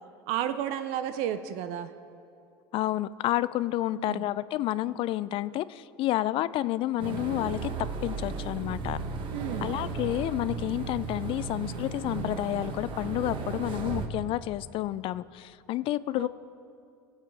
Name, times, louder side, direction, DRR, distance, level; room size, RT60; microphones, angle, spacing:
voice 1, 0.3-1.9 3.9-4.2 9.3-9.7 16.2-16.3, right 10 dB, 60° right, 11 dB, 0.6 m, -32 dB
voice 2, 2.7-7.7 8.0-9.0 9.6-16.3, left 15 dB, 45° left, 17 dB, 0.4 m, -30 dB
sound 1, 7.0-14.1, right 4 dB, 40° right, 1.2 m, -35 dB
21.5 x 7.3 x 3.4 m, 2.5 s
hypercardioid pair, 90°, 12 cm